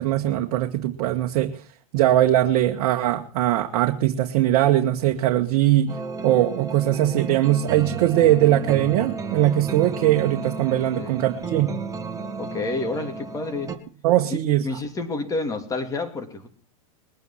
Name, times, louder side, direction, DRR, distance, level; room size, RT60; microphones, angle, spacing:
voice 1, 0.0-1.5 1.9-5.9 6.2-11.7 14.0-14.7, right 13 dB, 55° right, 3 dB, 1.5 m, -20 dB
sound 1, 5.9-13.8, right 5 dB, 15° right, 2.0 m, -33 dB
voice 2, 12.4-13.8 14.6-16.5, left 3 dB, 20° left, 6 dB, 2.8 m, -29 dB
21.0 x 9.4 x 5.8 m, 0.39 s
hypercardioid pair, 120°, 19 cm